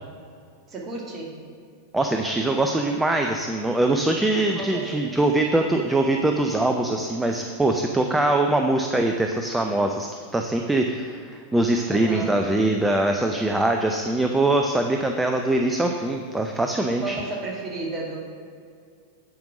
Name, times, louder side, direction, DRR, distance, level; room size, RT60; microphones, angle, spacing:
voice 1, 0.7-1.4 4.5-4.9 5.5-5.6 11.9-12.4 17.0-18.2, right 2 dB, 25° right, -2 dB, 2.0 m, -33 dB
voice 2, 1.9-17.2, right 2 dB, 10° right, 3 dB, 0.5 m, -23 dB
8.9 x 5.2 x 6.1 m, 2.2 s
figure-of-eight pair, 90°, 0 cm